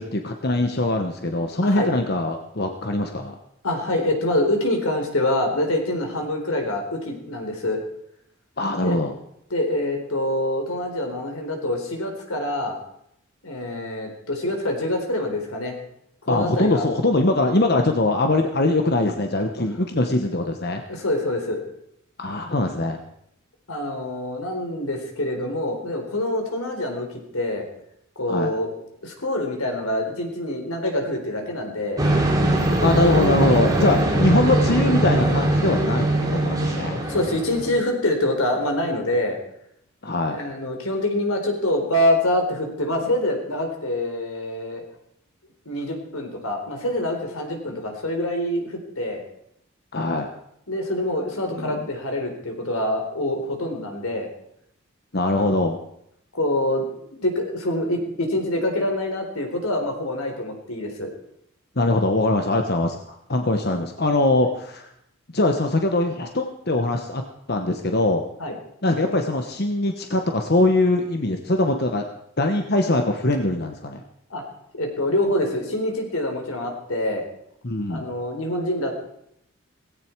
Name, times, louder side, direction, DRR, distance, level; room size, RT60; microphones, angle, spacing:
voice 1, 0.0-3.4 8.6-9.1 16.3-20.8 22.2-23.0 28.3-28.5 32.8-37.0 40.0-40.4 49.9-50.3 51.5-51.9 55.1-55.8 61.8-64.9 65.3-67.2 67.5-68.2 68.8-72.0 72.4-74.0 77.6-78.1, left 2 dB, 50° left, 5 dB, 1.2 m, -22 dB
voice 2, 3.6-7.8 8.8-9.0 9.5-12.8 13.4-15.7 16.2-16.8 20.9-21.6 23.7-27.1 27.3-27.7 28.2-28.7 29.0-32.0 33.8-34.1 37.0-39.4 40.3-44.8 45.7-49.2 50.7-54.3 55.3-55.5 56.3-61.1 68.4-68.5 74.3-74.4 74.7-77.2 77.9-79.0, left 1 dB, 85° left, 3 dB, 4.1 m, -25 dB
sound 1, 32.0-37.8, right 1 dB, 15° right, 3.1 m, -21 dB
18.0 x 16.5 x 4.7 m, 0.74 s
head